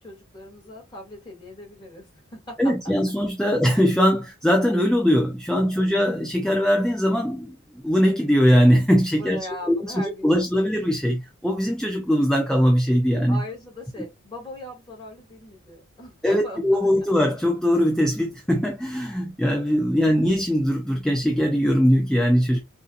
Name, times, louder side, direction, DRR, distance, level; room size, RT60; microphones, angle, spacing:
voice 1, 0.0-2.7 3.4-3.5 9.1-10.7 13.3-16.9, left 1 dB, 20° left, 2.4 m, -39 dB
voice 2, 2.6-7.6 7.8-9.4 9.7-13.4 16.2-22.6, equal, 5° left, 0.6 m, -21 dB
6.1 x 2.7 x 2.5 m
head